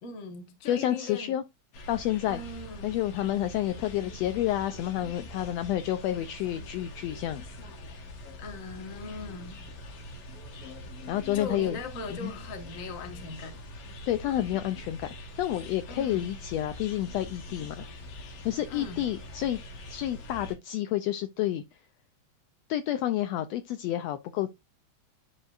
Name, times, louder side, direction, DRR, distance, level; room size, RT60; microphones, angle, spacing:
voice 1, 0.0-1.4 2.3-3.0 8.4-9.7 11.3-13.6 15.9-16.3 18.7-19.1, left 3 dB, 40° left, 1.3 m, -40 dB
voice 2, 0.6-1.4 1.9-2.4 2.8-7.4 11.1-11.8 12.1-12.3 14.1-15.1 15.4-17.8 18.2-19.6 19.9-21.6 22.7-24.5, left 13 dB, 80° left, 1.6 m, -29 dB
sound 1, 1.7-20.5, left 1 dB, 60° left, 2.5 m, -44 dB
10.5 x 4.6 x 2.5 m
omnidirectional pair, 3.3 m